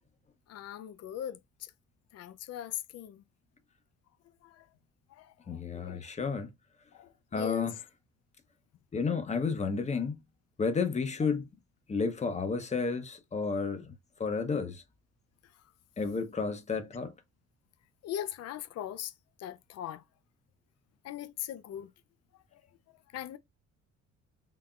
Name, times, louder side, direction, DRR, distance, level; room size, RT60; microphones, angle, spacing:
voice 1, 0.5-1.7 2.1-3.2 4.4-4.7 5.1-6.1 6.9-7.7 18.0-19.1 19.4-20.0 21.0-21.9 22.3-22.6 23.1-23.4, left 11 dB, 55° left, 0.6 m, -40 dB
voice 2, 5.5-6.5 7.3-7.7 8.9-10.2 10.6-11.5 11.9-13.9 14.2-14.8 16.0-17.1, left 5 dB, 25° left, 0.8 m, -31 dB
3.8 x 3.4 x 2.3 m
cardioid pair, 140°, 30 cm